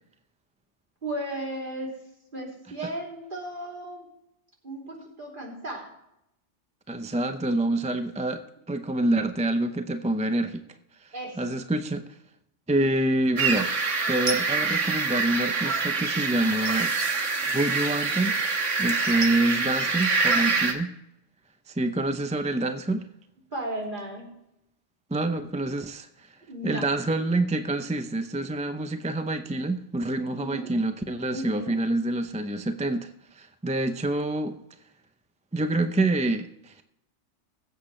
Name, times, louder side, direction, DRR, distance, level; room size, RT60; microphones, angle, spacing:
voice 1, 1.0-2.0 2.3-4.1 4.6-5.9 11.1-11.6 23.5-24.4 26.5-26.9 30.4-30.7 31.3-31.8, right 1 dB, 45° right, -2 dB, 3.4 m, -35 dB
voice 2, 6.9-8.4 8.7-10.6 11.4-12.0 12.7-13.7 14.1-16.9 17.2-18.4 18.8-20.9 21.7-23.1 25.1-26.1 26.6-34.6 35.5-36.8, right 2 dB, 10° right, 8 dB, 0.4 m, -27 dB
sound 1, 13.4-20.7, right 4 dB, 90° right, 1.7 m, -25 dB
22.0 x 8.0 x 3.2 m, 0.82 s
omnidirectional pair, 1.2 m